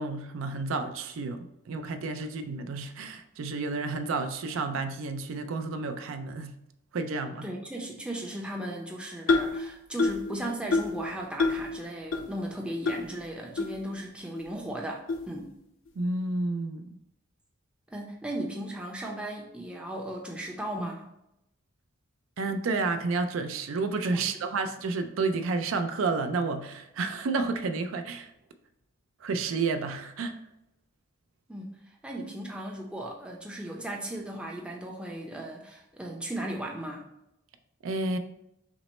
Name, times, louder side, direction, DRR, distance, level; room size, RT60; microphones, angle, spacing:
voice 1, 0.0-6.5 6.9-7.5 16.0-17.0 22.4-28.3 29.2-30.4 37.8-38.2, right 3 dB, 70° right, 8 dB, 0.4 m, -30 dB
voice 2, 7.4-15.5 17.9-21.1 24.1-24.3 31.5-37.1, right 1 dB, 5° right, -1 dB, 0.5 m, -36 dB
sound 1, 9.3-9.6 10.0-10.3 10.7-11.0 11.4-11.7 12.1-12.2 12.9-13.0 13.6-13.7 14.4-14.5 15.1-15.3, left 3 dB, 70° left, 0.6 m, -25 dB
6.0 x 2.0 x 4.1 m, 0.83 s
head